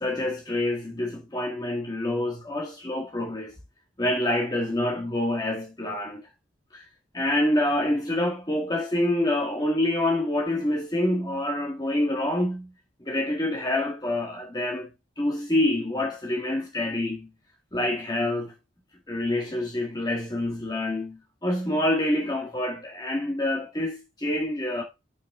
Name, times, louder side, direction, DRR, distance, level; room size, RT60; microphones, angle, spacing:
voice 1, 0.0-3.5 4.0-6.2 6.7-6.8 7.1-12.7 13.0-14.9 15.2-17.3 17.7-18.5 19.1-24.8, left 1 dB, 20° left, 1.8 m, -27 dB
8.6 x 6.3 x 3.6 m
head